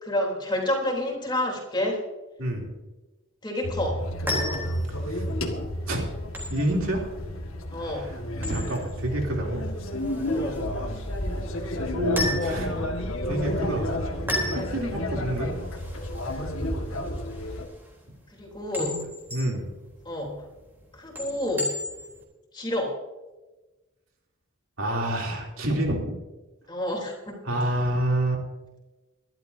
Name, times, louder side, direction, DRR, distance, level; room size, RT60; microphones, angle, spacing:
voice 1, 0.0-2.0 3.4-4.0 7.7-8.1 10.3-10.6 18.3-19.0 20.1-20.5 20.9-21.7 22.5-23.0 26.7-27.7, left 1 dB, 20° left, -1 dB, 3.5 m, -29 dB
sound 1, 3.6-17.7, left 1 dB, 80° left, 1.8 m, -31 dB
sound 2, 4.0-22.2, left 1 dB, 10° right, 3.6 m, -36 dB
voice 2, 4.9-5.2 5.9-6.0 6.5-7.1 7.8-9.6 10.8-10.9 11.5-13.9 14.5-15.5 18.8-19.0 19.3-19.7 24.8-26.1 27.4-28.4, right 1 dB, 75° right, 0 dB, 3.2 m, -28 dB
23.0 x 12.0 x 2.8 m, 1.1 s
head